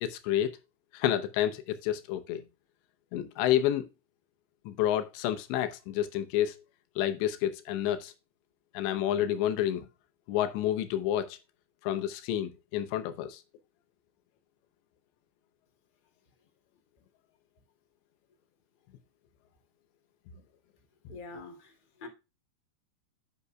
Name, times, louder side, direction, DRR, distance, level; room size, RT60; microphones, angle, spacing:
voice 1, 0.0-0.5 0.9-2.4 3.1-3.8 4.7-6.5 7.0-8.1 8.7-9.9 10.3-11.4 11.8-13.4, left 11 dB, 80° left, 3.0 m, -29 dB
voice 2, 21.1-21.7 22.0-22.1, left 4 dB, 15° left, 1.7 m, -44 dB
9.0 x 8.3 x 2.3 m
omnidirectional pair, 5.1 m